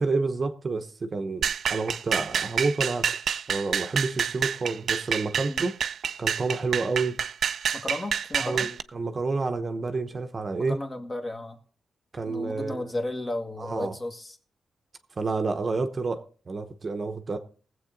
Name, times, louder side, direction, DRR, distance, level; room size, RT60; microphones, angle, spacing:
voice 1, 0.0-3.1 3.5-5.7 6.2-7.2 8.4-10.8 12.1-12.9 13.6-13.9 15.2-17.4, right 3 dB, 40° right, 0.9 m, -29 dB
sound 1, 1.4-8.8, right 7 dB, 65° right, 0.5 m, -28 dB
voice 2, 7.7-8.7 10.6-11.6 12.3-14.4, left 1 dB, 25° left, 1.6 m, -34 dB
19.0 x 7.8 x 3.9 m
cardioid pair, 100°, 0 cm